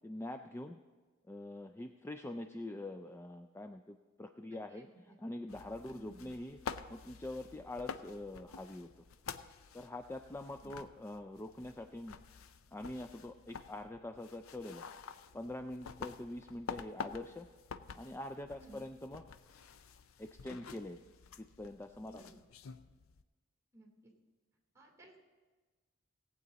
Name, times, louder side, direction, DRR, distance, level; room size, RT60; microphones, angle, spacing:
voice 1, 0.0-0.8 1.3-4.9 5.2-6.6 6.9-9.0 9.7-12.2 12.7-14.8 15.3-17.5 17.9-19.2 20.2-21.0 21.4-22.3, left 1 dB, 10° left, 6 dB, 0.3 m, -44 dB
voice 2, 4.5-4.9 5.9-6.2 10.6-10.7 18.6-18.8 22.1-22.4 23.7-24.1 24.7-25.2, right 1 dB, 15° right, 0 dB, 2.4 m, -56 dB
sound 1, 5.5-23.2, left 6 dB, 75° left, 0.5 m, -49 dB
18.0 x 8.3 x 4.0 m, 1.3 s
head